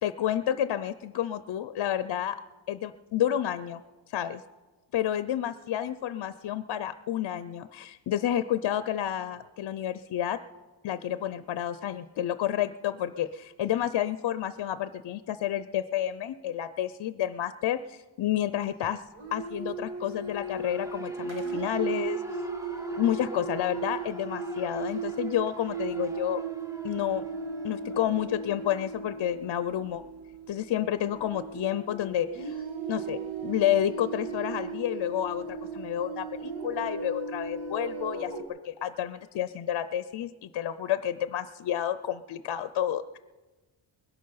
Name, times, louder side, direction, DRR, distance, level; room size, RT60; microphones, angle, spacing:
voice 1, 0.0-2.4 2.7-3.8 4.1-4.4 4.9-10.4 10.8-19.0 19.3-22.2 23.0-26.4 26.8-27.2 27.6-30.0 30.5-32.6 32.9-38.3 38.6-43.2, left 11 dB, 60° left, 13 dB, 0.6 m, -30 dB
sound 1, 19.1-38.4, right 4 dB, 80° right, 2.0 m, -36 dB
Shout / Cheering, 20.0-28.9, left 1 dB, 5° right, 0.7 m, -49 dB
21.0 x 12.0 x 5.6 m, 1.2 s
wide cardioid pair, 155°, 47 cm